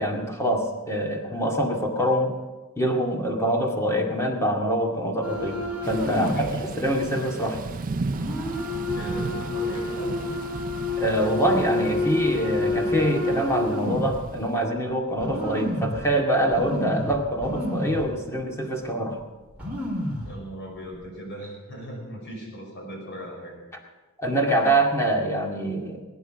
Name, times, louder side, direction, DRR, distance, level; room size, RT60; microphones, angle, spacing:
voice 1, 0.0-2.3 2.8-5.6 5.9-6.5 6.8-7.6 11.0-19.2 24.2-26.0, right 1 dB, 15° left, 1 dB, 2.1 m, -25 dB
sound 1, 5.2-6.5 6.9-7.0 8.1-14.2 14.8-14.9 15.2-16.0 16.5-18.1 18.4-18.5 19.2-19.3 19.5-20.3 20.8-21.1, left 2 dB, 5° right, 4.3 m, -29 dB
Thunder / Rain, 5.8-14.6, right 3 dB, 40° right, 0.5 m, -36 dB
voice 2, 6.1-6.6 8.9-10.2 20.2-23.6, equal, 60° left, 0 dB, 5.4 m, -38 dB
20.5 x 9.9 x 6.3 m, 1.2 s
head